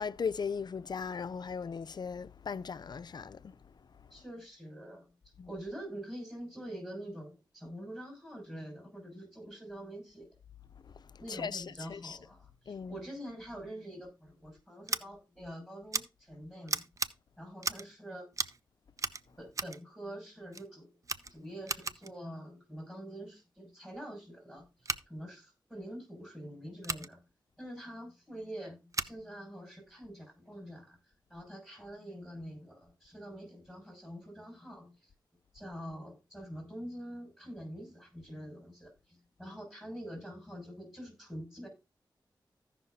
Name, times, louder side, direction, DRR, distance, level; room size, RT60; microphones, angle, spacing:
voice 1, 0.0-3.5 5.4-5.5 11.3-12.2 12.7-13.1, left 6 dB, 60° left, 0.4 m, -38 dB
voice 2, 4.1-5.1 5.5-10.3 11.2-16.8 17.4-18.3 19.4-20.9 21.3-24.7 25.1-27.2 27.6-31.0 31.3-35.1 35.5-41.7, equal, 5° right, 6.3 m, -45 dB
Scissors, 14.9-15.0 15.9-16.0 16.7-17.1 17.6-17.9 18.3-18.6 19.0-19.8 20.5-20.7 21.0-22.1 24.8-25.0 26.8-27.1 28.9-29.2, right 3 dB, 40° right, 0.6 m, -36 dB
15.5 x 5.8 x 2.7 m
cardioid pair, 55°, 8 cm